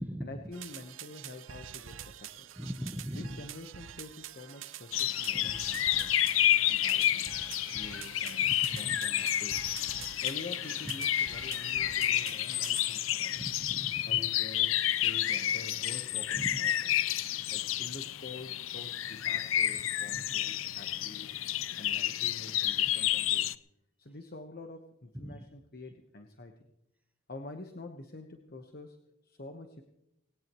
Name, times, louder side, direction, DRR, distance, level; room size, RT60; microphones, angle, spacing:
voice 1, 0.2-2.5 3.1-6.3 6.7-8.5 8.8-9.7 10.2-13.5 14.1-14.7 15.0-16.9 17.5-23.5 24.0-26.5 27.3-29.0 29.2-29.8, left 2 dB, 50° left, 4 dB, 1.2 m, -47 dB
sound 1, 0.5-12.9, right 10 dB, 75° right, 0.7 m, -46 dB
voice 2, 2.6-3.3 5.3-5.5 8.4-8.5 13.3-14.0 16.4-16.5 20.1-20.2 25.2-25.4, equal, 10° right, 7 dB, 0.9 m, -39 dB
sound 2, 4.9-23.6, left 12 dB, 85° left, 0.6 m, -30 dB
20.0 x 18.5 x 3.1 m, 0.86 s
head